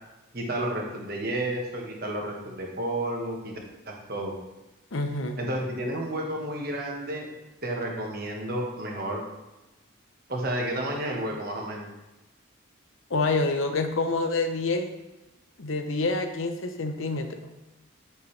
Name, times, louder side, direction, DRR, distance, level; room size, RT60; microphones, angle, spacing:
voice 1, 0.3-3.6 3.9-4.3 5.4-7.3 7.6-9.2 10.3-11.9, right 1 dB, 50° right, 0 dB, 1.4 m, -31 dB
voice 2, 4.9-5.4 13.1-14.9 15.6-17.4, left 3 dB, 85° left, 6 dB, 0.8 m, -27 dB
8.6 x 6.5 x 3.3 m, 1.0 s
head